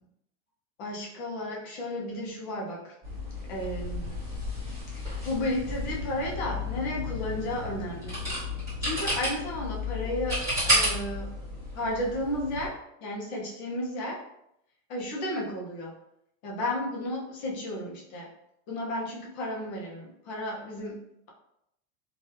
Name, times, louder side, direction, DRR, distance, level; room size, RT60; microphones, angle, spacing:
voice 1, 0.8-2.9 3.5-4.1 4.9-8.1 8.8-11.3 11.7-14.2 14.9-15.9 16.4-18.3 18.7-21.0, left 1 dB, 30° left, -2 dB, 0.4 m, -33 dB
sound 1, 3.0-12.7, left 1 dB, 5° right, 1.1 m, -32 dB
2.8 x 2.2 x 3.1 m, 0.78 s
supercardioid pair, 180°, 49 cm